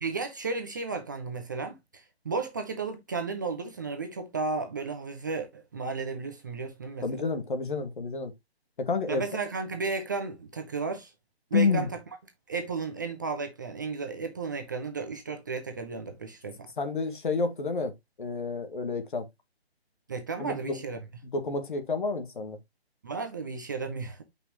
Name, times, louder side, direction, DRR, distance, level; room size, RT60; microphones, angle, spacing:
voice 1, 0.0-7.2 9.1-11.1 11.5-11.9 12.5-16.7 20.1-21.0 23.0-24.2, right 4 dB, 20° right, 0.6 m, -34 dB
voice 2, 7.0-8.3 8.8-9.2 11.5-11.9 16.8-19.3 20.4-20.8 21.3-22.6, left 4 dB, 50° left, 1.9 m, -29 dB
8.4 x 5.3 x 2.9 m
figure-of-eight pair, 140°, 32 cm